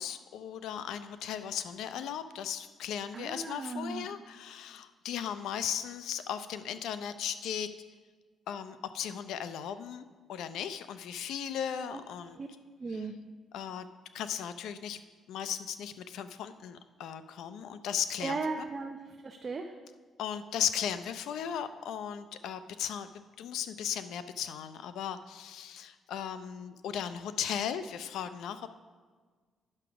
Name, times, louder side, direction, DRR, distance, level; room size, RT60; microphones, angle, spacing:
voice 1, 0.0-7.7 8.5-12.4 13.5-13.9 14.1-15.0 15.3-18.7 20.2-28.8, left 9 dB, 80° left, 11 dB, 0.5 m, -37 dB
voice 2, 3.1-4.1 11.9-12.0 12.3-12.5 12.8-13.1 18.2-19.7, right 3 dB, 35° right, 3 dB, 0.7 m, -36 dB
9.9 x 6.0 x 5.9 m, 1.5 s
cardioid pair, 90°, 0 cm